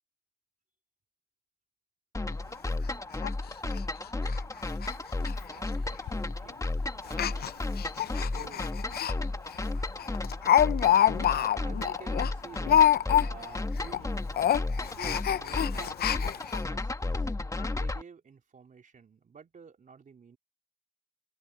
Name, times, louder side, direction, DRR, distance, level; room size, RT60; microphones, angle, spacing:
sound 1, 2.1-18.0, left 2 dB, 15° left, 1.7 m, -33 dB
Speech, 2.3-2.4 2.8-2.9 3.2-3.3 3.6-3.8 4.2-4.4 4.7-4.9 5.2-5.3 6.1-6.3 7.1-9.1 9.5-9.6 10.0-13.6 13.8-14.0 14.3-16.6 17.2-17.3 17.6-17.7, left 10 dB, 55° left, 0.6 m, -26 dB
voice 1, 5.5-6.6 7.0-7.5 8.2-8.6 11.3-12.8 13.1-14.3 14.8-16.0 16.7-17.3 17.7-20.4, right 6 dB, 40° right, 3.7 m, -50 dB
open air
cardioid pair, 90°, 20 cm